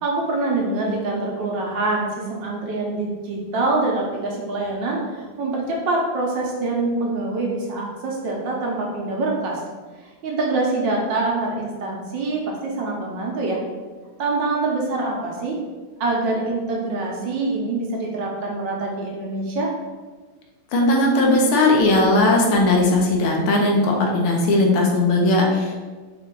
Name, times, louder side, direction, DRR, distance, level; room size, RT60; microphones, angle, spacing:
voice 1, 0.0-9.6 10.0-13.6 14.2-15.6 16.0-19.7, right 2 dB, 70° right, -2 dB, 1.3 m, -25 dB
voice 2, 20.7-25.8, left 2 dB, 85° left, 0 dB, 1.6 m, -18 dB
4.4 x 2.4 x 3.7 m, 1.4 s
omnidirectional pair, 2.3 m